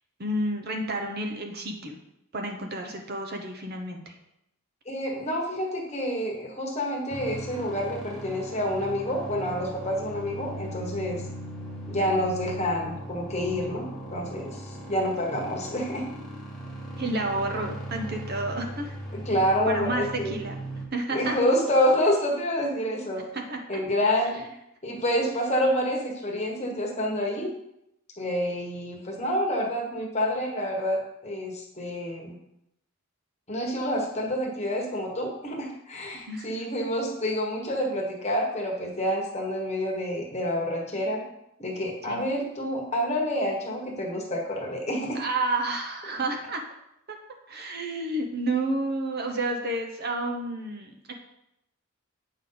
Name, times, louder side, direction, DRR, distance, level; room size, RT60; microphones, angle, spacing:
voice 1, 0.2-2.0 2.3-4.1 17.0-18.9 19.7-20.5 20.9-21.3 23.3-23.6 36.3-36.5 42.1-42.2 45.1-46.6 47.5-51.1, right 2 dB, 45° right, 3 dB, 0.9 m, -30 dB
voice 2, 4.9-11.2 11.9-16.1 19.1-20.4 21.1-23.2 23.7-24.5 24.8-27.5 28.2-32.4 33.5-41.2 41.6-45.2, equal, 30° left, 0 dB, 1.3 m, -28 dB
sound 1, 7.1-20.9, right 1 dB, ahead, 1.2 m, -38 dB
8.5 x 5.5 x 3.9 m, 0.81 s
head